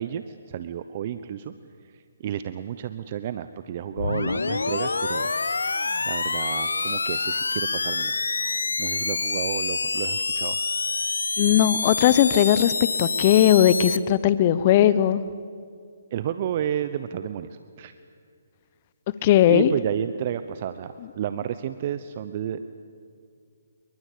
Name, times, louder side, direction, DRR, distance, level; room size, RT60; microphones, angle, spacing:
voice 1, 0.0-1.5 1.8-5.3 6.1-8.2 8.8-10.6 16.1-17.9 19.5-22.6, right 10 dB, 40° right, 12 dB, 1.0 m, -31 dB
sound 1, 4.0-14.0, left 4 dB, 80° left, 1.2 m, -27 dB
voice 2, 11.4-12.7 13.0-15.2 19.2-19.7, left 11 dB, 35° left, 15 dB, 0.9 m, -18 dB
28.0 x 23.0 x 8.6 m, 2.3 s
figure-of-eight pair, 140°, 0 cm